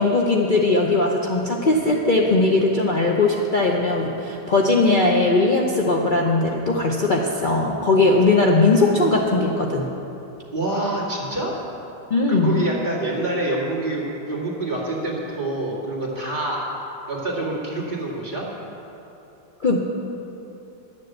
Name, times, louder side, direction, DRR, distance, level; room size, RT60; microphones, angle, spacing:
voice 1, 0.0-9.9 12.1-12.6 19.6-19.8, left 2 dB, 65° left, -1 dB, 0.4 m, -19 dB
voice 2, 10.5-11.5 12.3-16.6 17.1-18.5, right 2 dB, 25° right, -5 dB, 2.4 m, -26 dB
11.0 x 7.4 x 7.9 m, 2.9 s
omnidirectional pair, 2.0 m